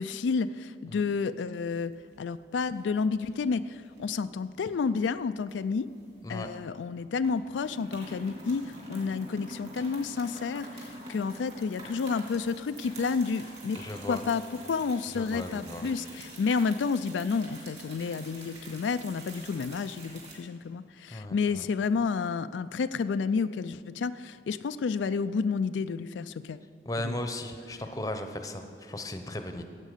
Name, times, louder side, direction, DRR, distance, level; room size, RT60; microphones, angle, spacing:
voice 1, 0.0-5.9 6.3-13.8 14.1-26.6 27.0-27.2, left 5 dB, 85° left, 12 dB, 0.4 m, -30 dB
sound 1, 1.7-2.3 2.6-2.8 3.2-4.0 4.6-6.5 6.8-6.9 7.2-20.3, right 1 dB, 35° right, 3.3 m, -46 dB
voice 2, 13.7-14.2 15.1-15.9 21.1-21.7 26.9-29.7, left 1 dB, 20° left, 7 dB, 0.8 m, -36 dB
15.5 x 8.3 x 6.7 m, 2.5 s
head